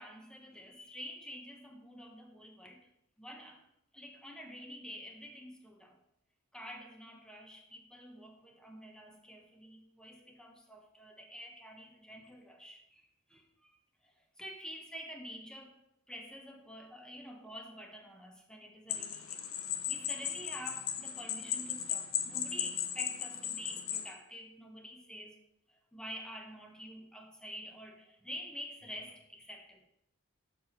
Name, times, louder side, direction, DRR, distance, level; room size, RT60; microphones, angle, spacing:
voice 1, 0.0-2.9 3.2-3.6 3.9-6.0 6.5-13.7 14.0-15.8 16.1-19.4 19.9-25.4 25.7-29.8, equal, 5° left, 3 dB, 0.8 m, -48 dB
sound 1, 18.9-24.1, left 9 dB, 75° left, 0.8 m, -36 dB
6.8 x 4.2 x 6.1 m, 0.80 s
head